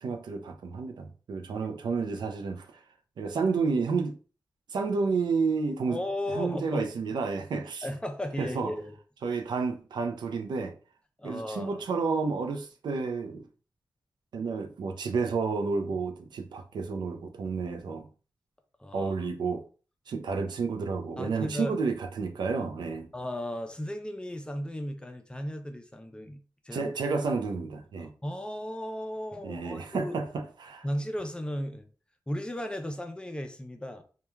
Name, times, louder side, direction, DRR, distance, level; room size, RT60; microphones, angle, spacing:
voice 1, 0.0-2.8 3.2-4.2 4.7-6.0 6.3-7.9 8.4-8.7 9.2-10.8 11.2-13.5 14.3-18.1 18.9-19.6 20.1-23.1 26.7-28.1 29.4-30.8, right 4 dB, 85° right, 0.4 m, -30 dB
voice 2, 5.9-6.9 7.8-8.9 11.2-11.8 18.8-19.3 21.2-21.8 23.1-26.9 28.0-30.1 30.8-31.9 32.3-34.0, left 1 dB, 15° left, 0.4 m, -35 dB
3.0 x 2.2 x 2.2 m
wide cardioid pair, 95°, 7 cm